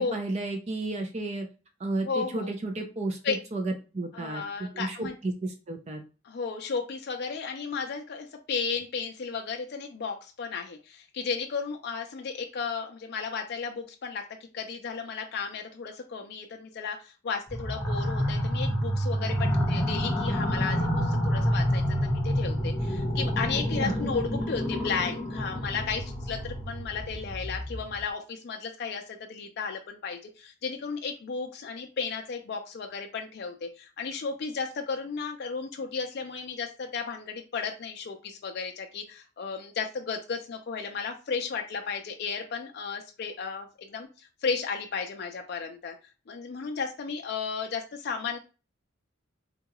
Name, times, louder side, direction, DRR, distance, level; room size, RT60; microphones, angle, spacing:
voice 1, 0.0-1.5 1.8-4.4 4.7-6.0 23.5-24.0, right 2 dB, 30° right, 4 dB, 0.4 m, -32 dB
voice 2, 2.1-2.5 3.2-3.4 4.1-5.1 6.2-14.2 14.5-46.0 46.3-48.4, left 5 dB, 50° left, 3 dB, 0.4 m, -34 dB
sound 1, 17.5-28.0, equal, ahead, 1.0 m, -28 dB
3.6 x 2.3 x 2.9 m, 0.33 s
head